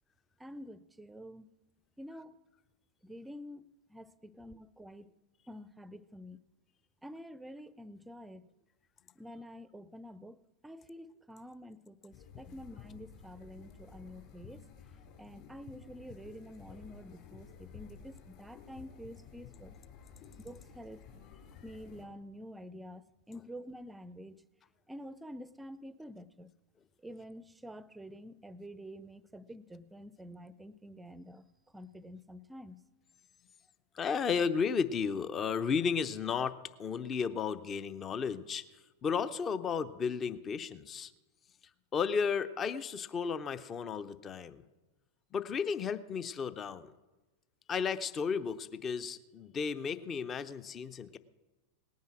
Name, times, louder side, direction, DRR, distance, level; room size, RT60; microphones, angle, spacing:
voice 1, 0.4-1.5 2.0-2.4 3.0-5.1 5.5-6.4 7.0-8.4 9.2-14.6 15.2-19.8 20.4-21.0 21.6-24.4 24.9-26.5 27.0-31.5 31.7-32.8, equal, 5° right, 17 dB, 0.6 m, -48 dB
sound 1, 12.1-22.1, left 7 dB, 40° left, 5.8 m, -53 dB
voice 2, 33.9-38.6 39.0-41.1 41.9-44.6 45.3-46.9 47.7-51.2, left 6 dB, 25° left, 14 dB, 0.8 m, -33 dB
18.5 x 9.5 x 6.1 m, 1.1 s
figure-of-eight pair, 90°, 0 cm